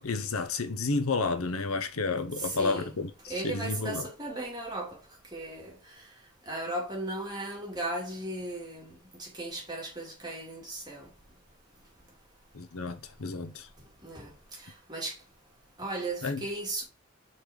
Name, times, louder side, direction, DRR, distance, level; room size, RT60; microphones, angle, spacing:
voice 1, 0.0-4.1 12.5-13.7 16.2-16.4, left 3 dB, 90° left, 0.9 m, -31 dB
voice 2, 2.4-2.9 3.3-5.0 5.3-5.8 6.5-11.1 14.0-14.3 14.9-15.1 15.8-16.8, right 2 dB, 20° right, 2.2 m, -36 dB
5.2 x 4.2 x 4.8 m
head